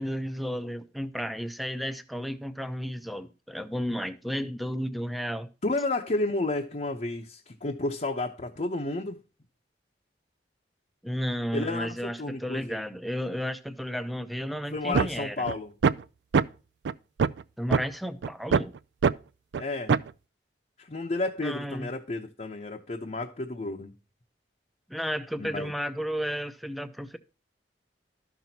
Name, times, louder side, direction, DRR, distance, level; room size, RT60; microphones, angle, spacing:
voice 1, 0.0-5.5 11.0-15.5 17.6-18.7 21.4-21.9 24.9-27.2, equal, ahead, 0.6 m, -33 dB
voice 2, 5.6-9.2 11.5-12.8 14.7-15.7 19.6-20.0 20.8-23.9 25.4-25.7, left 2 dB, 40° left, 0.7 m, -31 dB
sound 1, 14.9-15.1 15.5-15.6 15.8-16.0 16.3-16.4 16.8-16.9 17.2-17.4 17.7-17.8 18.2-18.6 19.0-19.1 19.5-19.6 19.9-20.1, right 6 dB, 75° right, 0.4 m, -22 dB
13.0 x 6.0 x 2.8 m
head